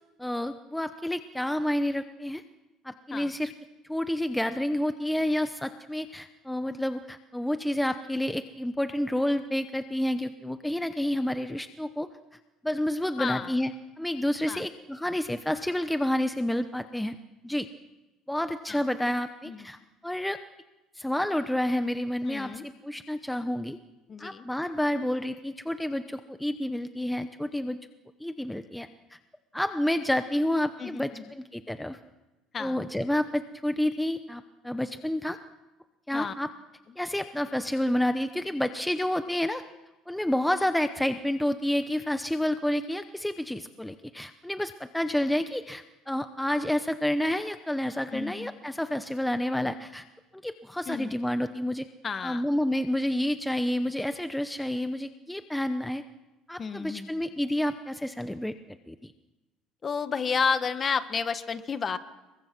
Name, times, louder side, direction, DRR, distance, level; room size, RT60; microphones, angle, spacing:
voice 1, 0.2-2.4 2.8-3.5 3.9-12.1 12.6-17.2 17.4-17.7 18.3-20.4 20.9-23.8 24.2-27.8 28.2-29.2 29.5-32.0 32.6-35.4 36.1-36.5 37.0-39.6 40.1-50.0 50.4-51.9 52.2-56.0 56.5-58.5 58.9-59.1, left 1 dB, 5° left, 9 dB, 0.8 m, -29 dB
voice 2, 13.2-13.5 14.5-14.6 18.7-18.8 19.4-19.6 22.2-22.6 24.1-24.5 30.8-31.2 32.5-32.8 36.1-36.3 48.1-48.5 50.9-51.1 52.0-52.4 56.6-57.1 59.8-62.0, left 5 dB, 30° left, 11 dB, 1.4 m, -31 dB
28.5 x 23.0 x 6.1 m, 1.1 s
cardioid pair, 135°, 0 cm